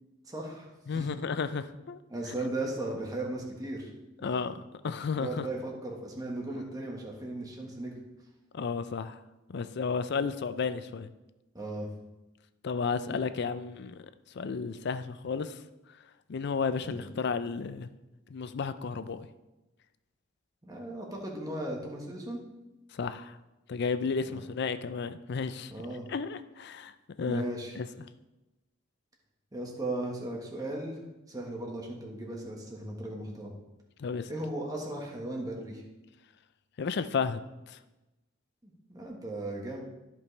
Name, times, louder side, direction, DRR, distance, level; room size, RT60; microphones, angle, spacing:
voice 1, 0.2-1.1 2.1-3.9 4.2-4.5 5.1-8.0 11.5-11.9 16.8-17.0 20.6-22.4 24.3-24.4 25.7-26.1 27.2-27.8 29.5-31.0 31.3-33.5 34.3-35.8 38.6-39.8, right 1 dB, 20° right, -1 dB, 1.4 m, -37 dB
voice 2, 0.9-2.0 4.2-5.5 8.5-9.2 9.5-11.1 12.6-14.0 14.3-15.6 16.3-17.9 18.3-19.3 22.9-23.4 23.7-25.7 26.1-26.9 27.2-27.4 27.8-27.9 34.0-34.3 36.8-37.4 37.7-37.8, left 5 dB, 60° left, 12 dB, 0.4 m, -32 dB
13.5 x 5.3 x 3.3 m, 1.0 s
head